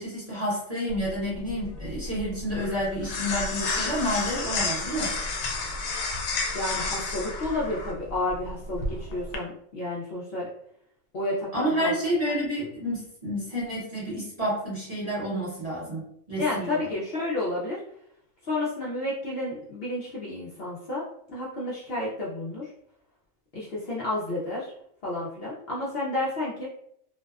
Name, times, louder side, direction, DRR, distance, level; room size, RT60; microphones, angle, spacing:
voice 1, 0.0-5.2 11.5-16.9, equal, 35° right, -7 dB, 0.8 m, -29 dB
sound 1, 0.9-9.4, left 3 dB, 85° left, 1.0 m, -31 dB
voice 2, 6.5-10.5 11.1-11.9 16.4-17.8 18.4-21.0 21.3-22.7 23.5-24.7 25.0-26.7, left 2 dB, 60° left, -6 dB, 0.7 m, -31 dB
2.6 x 2.1 x 2.3 m, 0.71 s
omnidirectional pair, 1.4 m